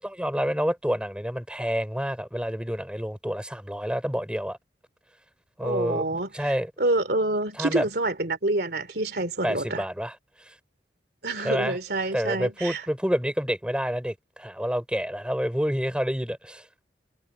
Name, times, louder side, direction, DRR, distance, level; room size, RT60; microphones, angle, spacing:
voice 1, 0.0-4.6 5.6-6.0 6.3-6.7 7.6-7.8 9.4-10.1 11.4-11.8 12.1-16.6, equal, 5° right, 6.3 m, -28 dB
voice 2, 5.6-9.8 11.2-12.9, right 2 dB, 60° right, 3.3 m, -27 dB
head